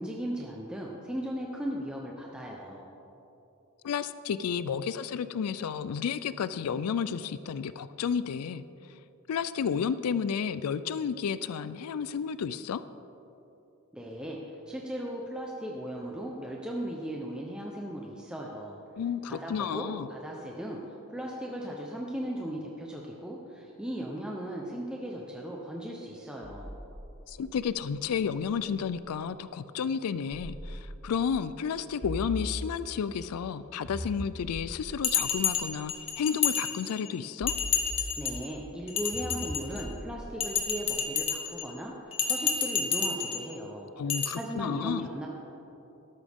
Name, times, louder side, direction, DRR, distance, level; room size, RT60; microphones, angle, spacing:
voice 1, 0.0-2.9 13.9-14.4 14.7-18.8 19.3-20.8 21.1-26.7 38.2-41.9 42.3-43.9 44.3-45.3, right 1 dB, 5° right, -2 dB, 0.8 m, -37 dB
voice 2, 3.8-8.6 9.3-12.8 19.0-20.1 27.3-37.5 44.0-45.1, left 7 dB, 85° left, 14 dB, 0.4 m, -31 dB
sound 1, 26.4-29.2 30.3-31.3 32.0-33.1 33.8-36.1 37.4-38.5 39.1-41.3, equal, 60° right, 2.1 m, -41 dB
Bell, 35.0-37.1 37.5-38.5 38.9-39.9 40.4-41.7 42.1-43.4 44.1-44.3, left 6 dB, 25° left, 0.9 m, -30 dB
13.5 x 12.5 x 3.6 m, 3.0 s
head